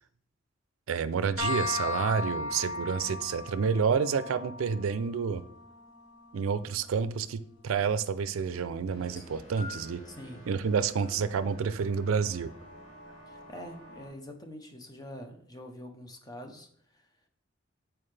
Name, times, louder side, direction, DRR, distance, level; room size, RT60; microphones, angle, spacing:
voice 1, 0.9-5.4 6.3-10.0 10.5-12.5, right 6 dB, 85° right, 14 dB, 0.4 m, -29 dB
sound 1, 1.4-8.8, left 3 dB, 60° left, 1.4 m, -38 dB
sound 2, 8.9-14.1, equal, 90° left, 2.0 m, -50 dB
sound 3, 8.9-10.1 11.0-11.2 12.2-12.3, left 3 dB, 40° left, 1.4 m, -46 dB
voice 2, 10.1-10.4 13.3-17.1, equal, 20° left, 4 dB, 0.7 m, -45 dB
7.6 x 4.4 x 3.2 m, 0.65 s
head